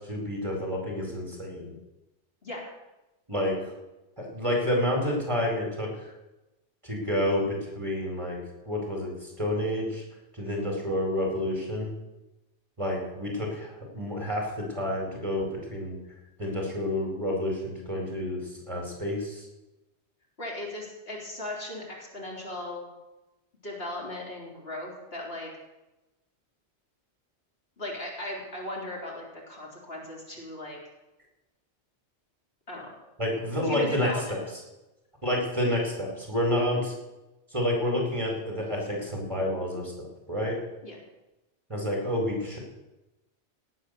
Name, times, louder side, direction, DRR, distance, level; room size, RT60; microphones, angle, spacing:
voice 1, 0.0-1.7 3.3-3.6 4.2-5.9 6.8-7.4 7.7-8.4 8.6-9.1 9.4-10.0 10.4-11.9 12.8-15.9 16.4-18.4 18.7-19.4 33.2-34.4 35.2-36.9 37.5-40.6 41.7-42.6, left 1 dB, 25° right, -1 dB, 4.8 m, -29 dB
voice 2, 20.4-22.9 23.6-25.5 27.8-30.8 32.7-32.9 33.6-34.3 40.8-41.0, left 1 dB, 60° left, -3 dB, 3.9 m, -37 dB
17.5 x 8.8 x 6.8 m, 0.99 s
omnidirectional pair, 1.2 m